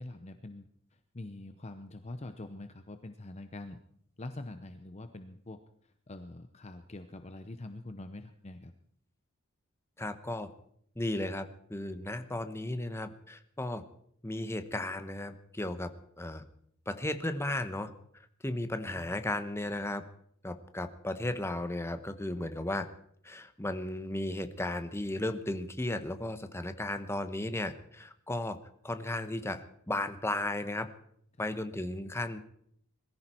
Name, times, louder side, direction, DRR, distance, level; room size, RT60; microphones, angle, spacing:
voice 1, 0.0-3.8 4.2-5.6 5.8-8.7 18.5-19.2 21.2-21.4 31.4-31.5, left 2 dB, 30° left, 9 dB, 0.7 m, -45 dB
voice 2, 10.0-10.5 11.0-13.8 14.2-15.9 16.2-16.4 16.9-20.0 20.4-22.9 23.2-28.6 28.8-30.9 31.4-32.4, left 1 dB, 10° left, 9 dB, 1.0 m, -35 dB
21.5 x 14.5 x 4.5 m, 0.65 s
head